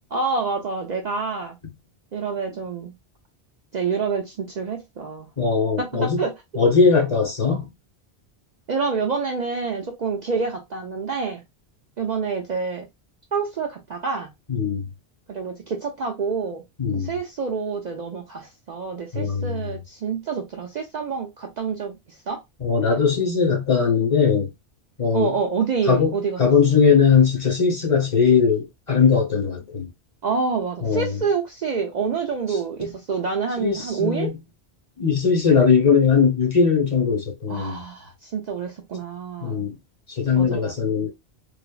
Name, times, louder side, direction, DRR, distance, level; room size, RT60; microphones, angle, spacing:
voice 1, 0.1-1.6 2.1-2.9 3.7-5.3 5.8-6.6 8.7-11.4 12.0-12.9 13.3-14.3 15.3-16.6 16.9-22.0 22.3-22.4 25.1-26.4 30.2-34.3 37.5-39.6 40.4-40.7, right 5 dB, 55° right, 0.5 m, -27 dB
voice 2, 5.4-6.2 6.5-7.7 14.5-14.8 16.8-17.1 19.1-19.6 22.6-24.5 25.0-25.3 25.9-29.9 30.8-31.2 33.6-34.4 35.0-37.7 39.4-39.7 40.1-41.1, left 6 dB, 35° left, 0.8 m, -20 dB
3.2 x 2.0 x 2.2 m
omnidirectional pair, 1.1 m